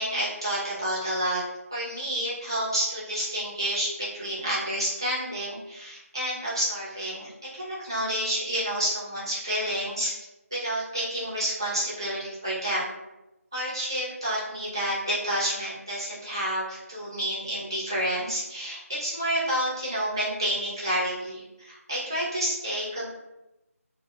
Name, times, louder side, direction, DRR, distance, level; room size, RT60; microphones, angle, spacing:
voice 1, 0.0-1.4 1.7-10.1 10.5-12.8 13.5-23.1, equal, 15° right, -8 dB, 0.4 m, -29 dB
2.7 x 2.1 x 2.2 m, 0.96 s
figure-of-eight pair, 175°, 8 cm